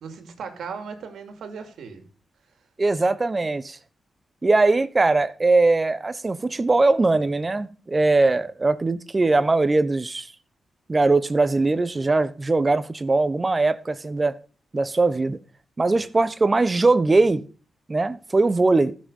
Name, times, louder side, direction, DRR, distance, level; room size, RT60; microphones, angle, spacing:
voice 1, 0.0-2.1, right 5 dB, 80° right, 2.5 m, -37 dB
voice 2, 2.8-3.8 4.4-10.3 10.9-14.4 14.7-15.4 15.8-17.5 17.9-18.9, right 3 dB, 30° right, 1.1 m, -20 dB
14.5 x 6.4 x 5.5 m
cardioid pair, 65°, 0 cm